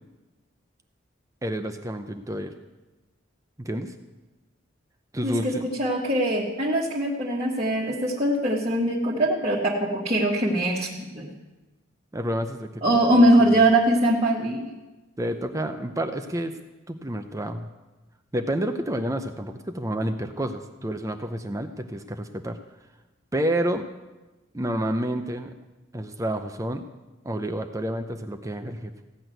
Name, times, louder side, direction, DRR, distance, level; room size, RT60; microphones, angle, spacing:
voice 1, 1.4-2.5 3.6-3.9 5.1-5.7 12.1-12.8 13.2-13.3 13.5-13.6 15.2-16.5 16.9-17.7 18.3-22.6 23.3-23.8 24.5-25.5 25.9-26.8 27.2-28.9, right 1 dB, 15° right, 6 dB, 0.6 m, -29 dB
voice 2, 5.2-11.3 12.8-14.7, right 1 dB, 30° right, -4 dB, 1.5 m, -22 dB
15.5 x 6.2 x 9.2 m, 1.1 s
head